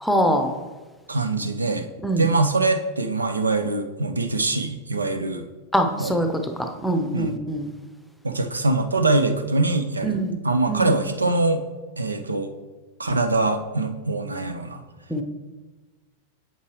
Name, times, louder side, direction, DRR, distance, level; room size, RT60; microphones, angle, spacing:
voice 1, 0.0-0.5 2.0-2.2 5.7-6.3 6.6-7.7 10.0-10.4 10.7-10.9 15.1-15.2, right 1 dB, ahead, 5 dB, 0.7 m, -23 dB
voice 2, 1.1-1.9 2.2-5.5 6.0-6.2 7.1-7.4 8.2-11.6 12.0-12.5 13.0-14.8, right 2 dB, 80° right, 9 dB, 0.5 m, -23 dB
8.3 x 7.4 x 3.1 m, 1.3 s
figure-of-eight pair, 90°, 0 cm